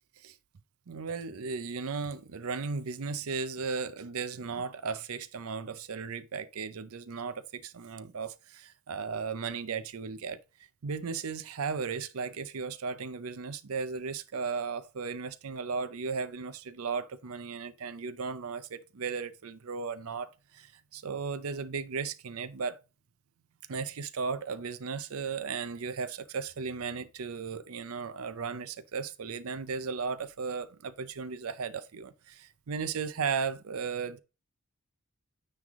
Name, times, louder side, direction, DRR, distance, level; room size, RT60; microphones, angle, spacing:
voice 1, 0.9-10.4 10.8-22.8 23.7-34.2, right 5 dB, 80° right, 0.6 m, -36 dB
9.6 x 3.4 x 3.6 m
head